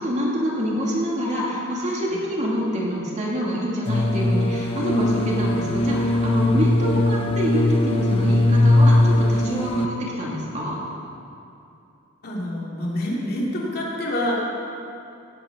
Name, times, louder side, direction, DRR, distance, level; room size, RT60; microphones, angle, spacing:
voice 1, 0.0-10.8, equal, 35° right, -4 dB, 2.8 m, -26 dB
sound 1, 3.9-9.9, left 1 dB, 25° left, 0.7 m, -20 dB
voice 2, 12.2-14.3, left 1 dB, 50° left, -4 dB, 2.7 m, -27 dB
17.5 x 13.0 x 4.1 m, 2.6 s
head